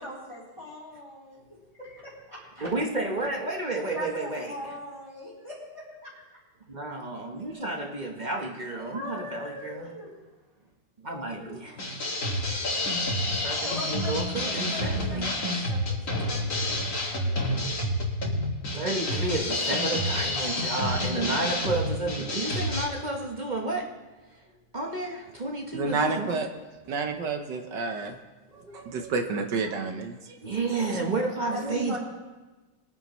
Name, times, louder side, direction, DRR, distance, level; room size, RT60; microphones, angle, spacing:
voice 1, 0.0-1.4 1.8-2.7 3.9-6.2 7.3-7.7 8.6-10.1 13.6-17.4 30.4-30.5 31.5-32.0, left 1 dB, 15° left, -7 dB, 3.1 m, -40 dB
voice 2, 2.6-4.5 6.7-9.9 11.0-11.9 13.4-15.7 17.1-17.3 18.7-24.0 24.3-24.4 24.7-26.3 26.9-27.0 28.5-28.9 30.4-32.0, right 2 dB, 35° right, 1 dB, 0.8 m, -31 dB
sound 1, 11.8-22.9, left 1 dB, 40° left, 2.2 m, -29 dB
voice 3, 25.7-26.5 26.9-28.1 28.5-30.4, right 4 dB, 65° right, 5 dB, 1.5 m, -30 dB
22.0 x 9.6 x 3.1 m, 1.2 s
omnidirectional pair, 2.2 m